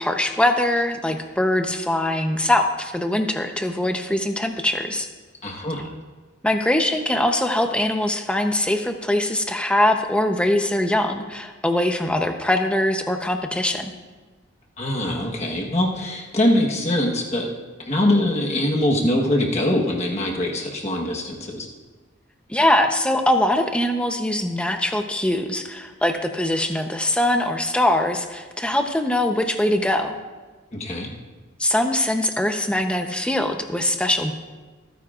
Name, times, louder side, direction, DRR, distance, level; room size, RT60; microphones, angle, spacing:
voice 1, 0.0-5.1 6.4-13.9 22.5-30.1 31.6-34.4, left 1 dB, 5° left, 5 dB, 0.7 m, -22 dB
voice 2, 5.4-5.9 14.8-17.5 17.8-21.7 30.7-31.1, left 1 dB, 35° left, -1 dB, 1.3 m, -23 dB
26.0 x 9.3 x 2.5 m, 1.3 s
head